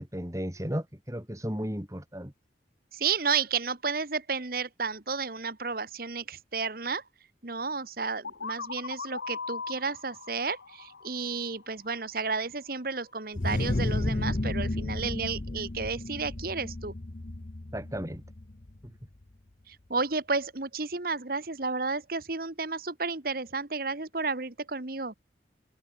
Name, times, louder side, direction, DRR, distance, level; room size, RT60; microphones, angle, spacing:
voice 1, 0.0-2.3 17.7-18.2, equal, 15° right, 2.9 m, -34 dB
voice 2, 2.9-7.0 7.4-16.9 19.7-25.1, right 4 dB, 50° right, 1.6 m, -32 dB
sound 1, 8.2-12.0, left 5 dB, 85° left, 1.1 m, -40 dB
sound 2, 13.3-18.9, left 1 dB, 40° left, 0.9 m, -32 dB
head